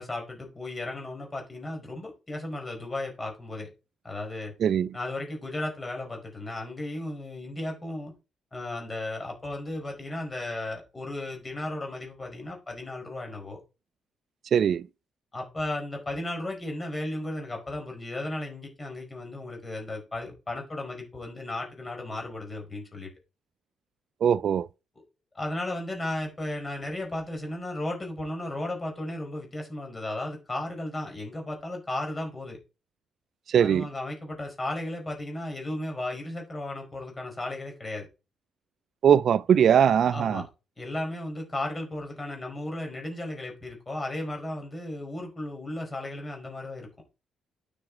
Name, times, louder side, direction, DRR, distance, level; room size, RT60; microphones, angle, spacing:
voice 1, 0.0-3.7 4.0-4.5 4.9-8.1 8.5-13.6 15.3-23.1 25.3-32.6 33.6-38.1 40.1-40.5 40.8-46.9, left 1 dB, 25° left, 4.6 m, -35 dB
voice 2, 14.5-14.8 24.2-24.7 33.5-33.9 39.0-40.4, right 8 dB, 60° right, 0.4 m, -21 dB
9.4 x 6.1 x 3.8 m
cardioid pair, 90°, 0 cm